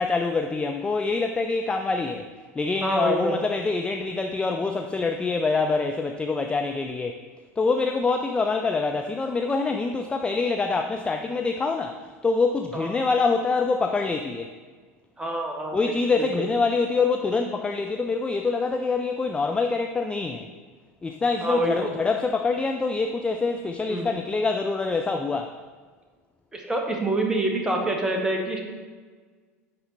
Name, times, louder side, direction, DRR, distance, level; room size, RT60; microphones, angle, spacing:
voice 1, 0.0-2.3 2.6-7.2 7.6-14.5 15.7-20.5 21.0-25.6, left 4 dB, 10° left, 5 dB, 0.4 m, -25 dB
voice 2, 2.8-3.4 12.7-12.9 15.2-16.5 21.4-21.9 23.9-24.1 26.5-28.7, right 1 dB, 10° right, 1 dB, 1.3 m, -27 dB
10.5 x 4.1 x 4.0 m, 1.5 s
figure-of-eight pair, 80°, 8 cm